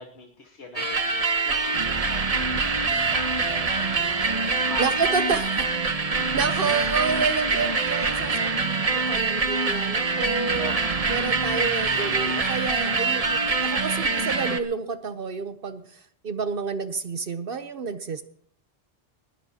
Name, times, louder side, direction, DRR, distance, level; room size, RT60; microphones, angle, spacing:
voice 1, 0.0-5.7 6.5-6.8 7.0-7.1 10.6-11.2, left 3 dB, 85° left, 1 dB, 1.7 m, -42 dB
sound 1, 0.8-14.6, right 3 dB, 35° right, 1.0 m, -25 dB
voice 2, 4.8-5.6 6.3-10.7 11.1-18.2, right 5 dB, 60° right, 11 dB, 1.0 m, -29 dB
20.5 x 16.5 x 2.8 m, 0.62 s
omnidirectional pair, 1.1 m